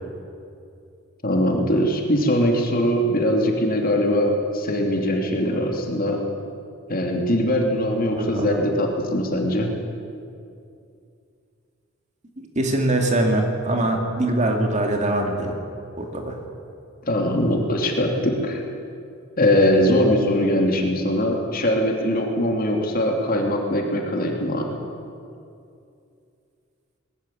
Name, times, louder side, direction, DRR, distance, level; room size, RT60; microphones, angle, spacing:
voice 1, 1.2-6.2 6.9-9.7 17.0-18.6 19.4-24.8, left 1 dB, 45° left, 1 dB, 2.8 m, -21 dB
voice 2, 8.2-8.6 12.4-15.6 16.0-16.4, right 1 dB, 35° right, 3 dB, 2.4 m, -23 dB
20.0 x 14.0 x 10.0 m, 2.5 s
head